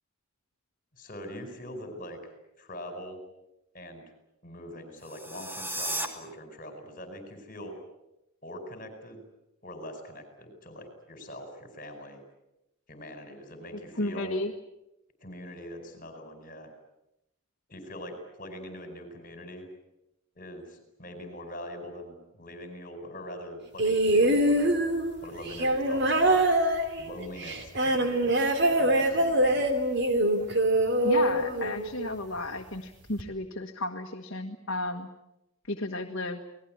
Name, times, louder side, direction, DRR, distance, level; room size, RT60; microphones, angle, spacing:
voice 1, 1.0-3.2 3.7-4.1 4.4-7.7 8.4-9.2 9.6-12.2 12.9-14.3 15.2-16.7 17.7-19.7 20.3-24.8 25.2-26.5 27.0-29.6, equal, 40° left, 7 dB, 4.9 m, -43 dB
sound 1, 5.0-6.1, right 1 dB, 10° right, 2.4 m, -34 dB
voice 2, 14.0-14.5 31.0-35.1 35.7-36.5, left 2 dB, 60° left, 2 dB, 1.7 m, -33 dB
sound 2, 23.8-32.2 33.2-33.3, right 1 dB, 55° right, 3.0 m, -24 dB
28.0 x 19.5 x 8.9 m, 0.88 s
head